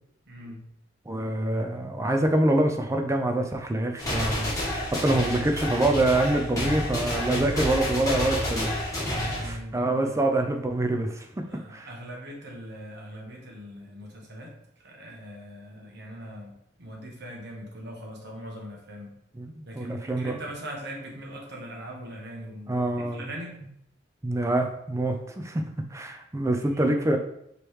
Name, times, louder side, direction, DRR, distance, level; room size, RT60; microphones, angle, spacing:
voice 1, 0.3-0.6 9.0-10.2 11.4-14.5 14.8-19.1 19.7-23.6 26.6-26.9, equal, 60° right, -1 dB, 1.1 m, -41 dB
voice 2, 1.1-4.5 5.0-9.1 9.4-11.5 11.7-11.9 19.3-20.4 22.7-23.3 24.2-25.6 25.9-27.2, right 1 dB, 15° right, 4 dB, 0.4 m, -26 dB
sound 1, 4.0-9.5, left 1 dB, 20° left, 1.3 m, -29 dB
5.1 x 3.1 x 3.1 m, 0.76 s
head